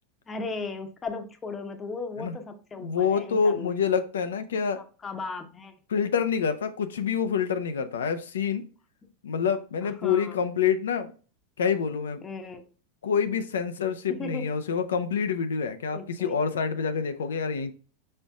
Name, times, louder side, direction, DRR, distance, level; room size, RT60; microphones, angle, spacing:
voice 1, 0.3-3.8 4.8-5.8 9.0-9.1 9.8-10.4 12.2-12.6 14.1-14.5 15.9-16.4, left 3 dB, 25° left, 6 dB, 0.9 m, -37 dB
voice 2, 2.8-4.8 5.9-8.6 9.2-11.1 11.6-12.2 13.0-17.7, left 6 dB, 80° left, 10 dB, 0.6 m, -27 dB
5.1 x 4.4 x 2.4 m, 0.38 s
hypercardioid pair, 100°, 0 cm